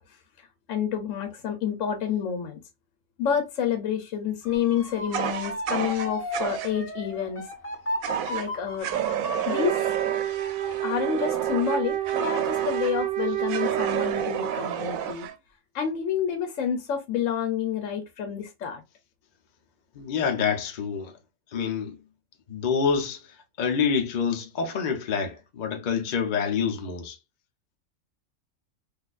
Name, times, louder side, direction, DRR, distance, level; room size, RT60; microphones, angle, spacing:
voice 1, 0.7-2.6 3.2-7.5 8.3-8.9 9.5-9.8 10.8-15.3 15.7-18.8, left 8 dB, 70° left, 1.0 m, -29 dB
Motor vehicle (road) / Siren, 4.4-13.3 13.8-14.2, equal, 10° left, 0.9 m, -36 dB
Fire, 5.1-6.7 8.0-8.5 8.8-13.0 13.5-15.3, right 9 dB, 85° right, 1.0 m, -31 dB
Wind instrument woodwind instrument, 9.5-14.7, right 12 dB, 65° right, 0.6 m, -29 dB
voice 2, 19.9-21.2 21.5-22.0 22.5-27.2, left 6 dB, 50° left, 0.6 m, -27 dB
4.0 x 2.5 x 2.4 m
omnidirectional pair, 1.4 m